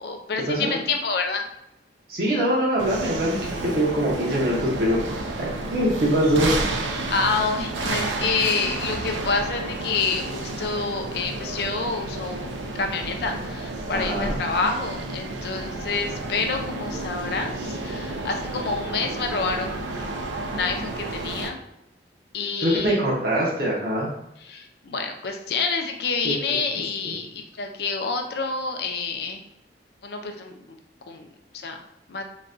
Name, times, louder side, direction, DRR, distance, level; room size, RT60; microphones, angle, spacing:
voice 1, 0.0-1.4 7.1-12.5 12.8-21.6 22.3-23.0 24.4-29.4 30.0-30.5 31.1-31.3 31.6-31.8 32.1-32.2, left 4 dB, 60° left, 4 dB, 0.4 m, -28 dB
voice 2, 2.1-5.0 5.4-6.5 13.9-14.3 22.6-24.1 26.2-26.3 27.0-27.1, right 1 dB, 55° right, -5 dB, 0.8 m, -23 dB
sound 1, 2.8-21.5, right 2 dB, 85° right, 0.4 m, -31 dB
3.9 x 2.2 x 2.4 m, 0.83 s
head